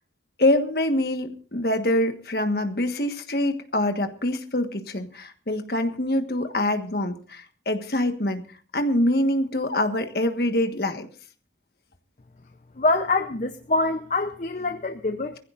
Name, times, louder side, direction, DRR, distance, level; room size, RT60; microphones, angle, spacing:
voice 1, 0.4-8.4 8.7-11.1, left 1 dB, 55° left, 7 dB, 1.5 m, -25 dB
voice 2, 12.8-15.4, left 2 dB, 40° left, 7 dB, 0.7 m, -25 dB
23.5 x 15.5 x 2.5 m, 0.41 s
head